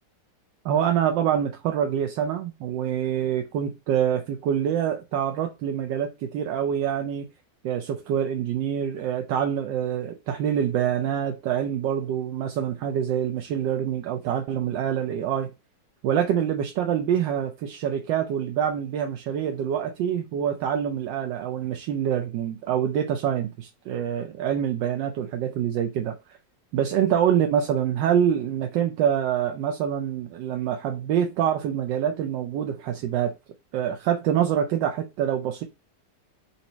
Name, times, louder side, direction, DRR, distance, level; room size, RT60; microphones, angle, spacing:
voice 1, 0.6-7.3 7.6-15.5 16.0-26.1 26.7-33.3 33.7-35.6, right 9 dB, 85° right, 1.3 m, -25 dB
4.1 x 2.8 x 4.3 m
omnidirectional pair, 1.9 m